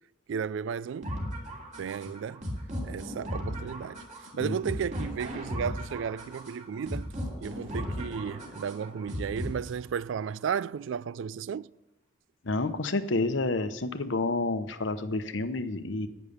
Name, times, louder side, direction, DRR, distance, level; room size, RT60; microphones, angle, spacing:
voice 1, 0.3-1.2 1.8-2.5 2.8-4.0 4.4-7.1 7.4-11.7, right 7 dB, 75° right, 0.3 m, -34 dB
sound 1, 1.0-10.0, equal, 40° right, 3.0 m, -37 dB
voice 2, 12.4-16.1, left 2 dB, 75° left, 0.9 m, -29 dB
11.0 x 9.9 x 6.7 m
head